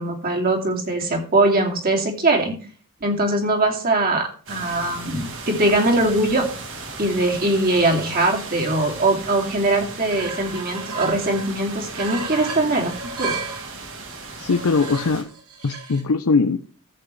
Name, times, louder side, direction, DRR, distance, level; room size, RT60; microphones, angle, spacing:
voice 1, 0.0-2.6 3.0-6.5 7.0-12.9 13.2-13.3, right 2 dB, 45° right, 1 dB, 2.6 m, -21 dB
sound 1, 4.5-15.2, right 3 dB, 60° right, 2.9 m, -36 dB
sound 2, 9.4-9.5 9.8-11.5 11.9-13.7 14.4-16.0, right 4 dB, 80° right, 2.9 m, -34 dB
voice 2, 14.4-15.3 15.6-16.6, left 4 dB, 75° left, 8 dB, 0.6 m, -20 dB
14.0 x 8.4 x 3.2 m, 0.40 s
head